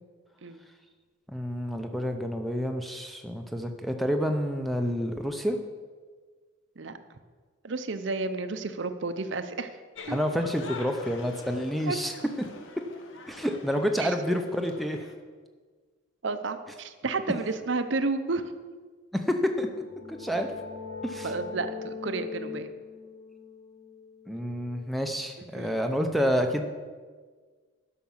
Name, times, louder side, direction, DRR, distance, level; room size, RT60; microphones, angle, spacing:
voice 1, 1.3-5.6 10.1-12.1 13.3-15.0 19.1-19.7 20.1-20.5 21.0-21.3 24.3-26.7, equal, ahead, 5 dB, 0.6 m, -28 dB
voice 2, 7.6-9.7 10.1-10.2 11.9-12.0 14.0-14.4 16.2-18.4 21.2-22.7 25.5-25.8, right 3 dB, 65° right, 9 dB, 0.6 m, -31 dB
sound 1, 9.9-15.1, left 3 dB, 70° left, 1.1 m, -46 dB
sound 2, 19.6-25.1, left 5 dB, 35° left, 1.5 m, -41 dB
11.5 x 5.9 x 7.2 m, 1.5 s
head